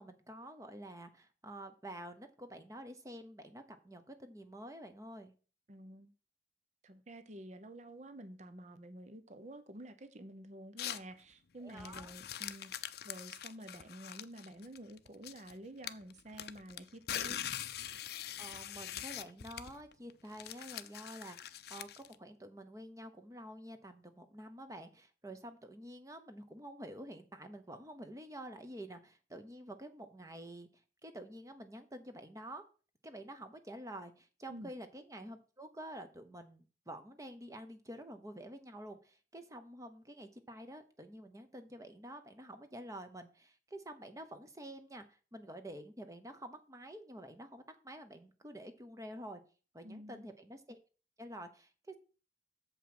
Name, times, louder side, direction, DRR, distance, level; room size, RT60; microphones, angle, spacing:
voice 1, 0.0-5.3 11.6-12.1 18.4-30.7 31.0-32.6 33.0-45.0 45.3-49.4 49.7-50.8 51.2-52.0, right 1 dB, 20° right, 1.0 m, -49 dB
voice 2, 5.7-6.1 6.8-12.7 13.0-17.4 34.5-34.7 49.8-50.3, right 1 dB, 40° right, 0.7 m, -50 dB
sound 1, 10.8-11.1 11.7-15.5 15.8-22.2, left 10 dB, 60° left, 0.5 m, -43 dB
7.3 x 5.4 x 6.0 m
head